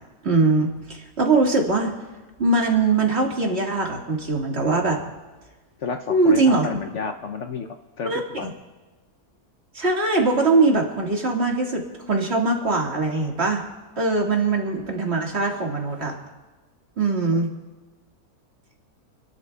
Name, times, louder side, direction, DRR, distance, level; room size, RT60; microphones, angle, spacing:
voice 1, 0.2-1.9 2.4-5.0 6.1-6.7 8.0-8.5 9.7-13.6 14.0-16.2 17.0-17.5, right 3 dB, 45° right, 0 dB, 2.1 m, -21 dB
voice 2, 5.8-7.7 8.0-8.5 17.3-17.4, left 5 dB, 65° left, 6 dB, 0.8 m, -31 dB
29.5 x 12.0 x 2.3 m, 1.2 s
omnidirectional pair, 1.6 m